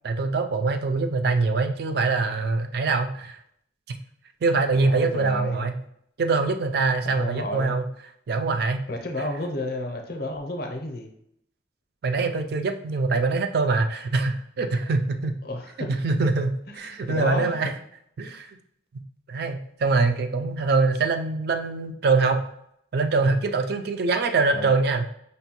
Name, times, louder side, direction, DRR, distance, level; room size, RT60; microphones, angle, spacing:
voice 1, 0.0-3.4 4.4-5.7 6.2-7.8 8.3-8.8 12.0-15.3 15.8-17.7 18.2-18.5 19.3-22.4 22.9-25.0, right 3 dB, 55° right, 6 dB, 0.3 m, -24 dB
voice 2, 4.8-5.7 7.0-7.7 8.9-11.1 14.7-14.8 15.4-15.9 16.7-17.5 24.5-24.7, left 1 dB, 50° left, 3 dB, 0.5 m, -31 dB
5.2 x 2.2 x 2.8 m, 0.72 s
head